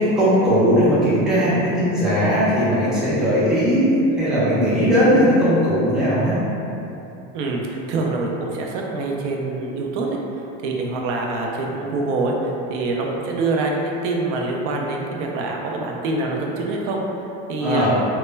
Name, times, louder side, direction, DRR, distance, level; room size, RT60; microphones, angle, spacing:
voice 1, 0.0-6.4 17.6-17.9, equal, ahead, -11 dB, 0.3 m, -18 dB
voice 2, 7.3-10.1 10.6-17.0 17.5-17.9, right 2 dB, 85° right, 0 dB, 0.5 m, -25 dB
2.1 x 2.0 x 3.2 m, 2.9 s
cardioid pair, 150°, 35 cm